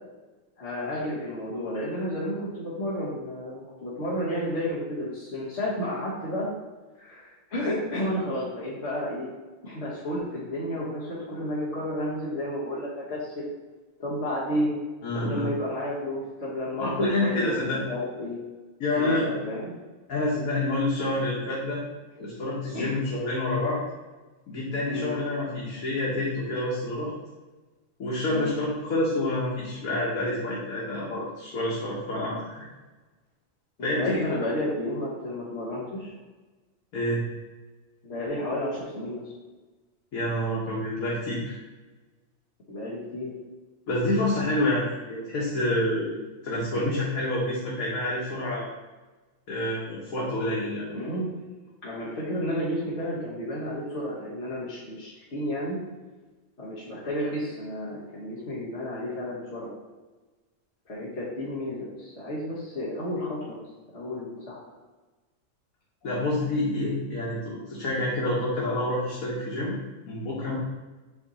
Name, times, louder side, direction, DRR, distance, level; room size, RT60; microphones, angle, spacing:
voice 1, 0.6-6.5 7.0-9.3 9.6-13.4 14.0-14.8 15.1-18.4 19.0-19.7 22.2-22.3 22.7-22.9 24.9-25.1 28.3-28.5 33.8-36.1 38.0-39.2 42.7-43.3 46.7-46.9 50.9-51.3 51.8-55.8 56.6-59.7 60.9-63.6 63.9-64.6, left 1 dB, 55° left, -8 dB, 1.6 m, -32 dB
voice 2, 15.0-15.5 16.8-17.8 18.8-19.3 20.1-21.8 22.2-23.8 24.5-27.1 28.0-32.6 33.8-34.2 36.9-37.2 40.1-41.6 43.9-48.7 49.5-50.9 66.0-69.8 70.0-70.6, left 1 dB, 90° left, -6 dB, 1.6 m, -28 dB
7.8 x 3.0 x 4.1 m, 1.2 s
omnidirectional pair, 1.4 m